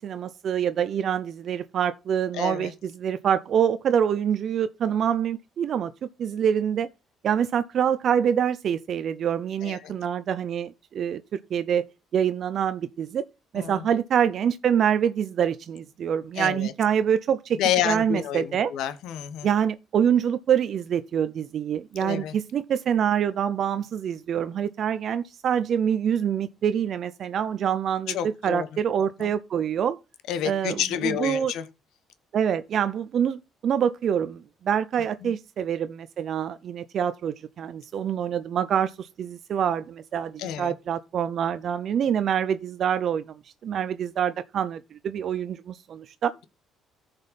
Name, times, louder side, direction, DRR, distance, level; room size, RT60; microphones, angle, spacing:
voice 1, 0.0-6.9 7.2-11.8 12.1-13.2 13.5-17.6 17.8-18.7 19.4-30.0 30.4-31.5 32.3-43.2 43.6-46.3, right 8 dB, 55° right, 0.5 m, -26 dB
voice 2, 2.3-2.7 9.6-9.9 13.6-13.8 16.4-16.7 17.6-19.5 22.0-22.3 28.1-28.7 29.2-29.3 30.3-31.6 35.2-35.3 40.4-40.7, left 10 dB, 80° left, 1.1 m, -29 dB
14.5 x 5.3 x 4.1 m
cardioid pair, 110°, 0 cm